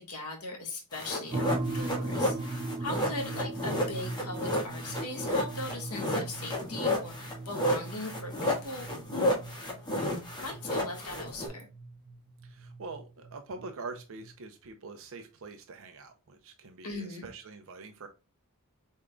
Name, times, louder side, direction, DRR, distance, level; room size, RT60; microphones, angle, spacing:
voice 1, 0.0-8.9 9.1-9.4 10.4-11.7 16.8-17.2, left 2 dB, 85° left, 1 dB, 1.5 m, -39 dB
sound 1, 0.9-11.5, left 1 dB, 20° left, 1.4 m, -32 dB
sound 2, 1.3-14.3, right 2 dB, 20° right, 0.4 m, -39 dB
voice 2, 12.4-18.1, right 3 dB, 65° right, 6 dB, 0.6 m, -44 dB
5.0 x 3.6 x 2.2 m, 0.30 s
head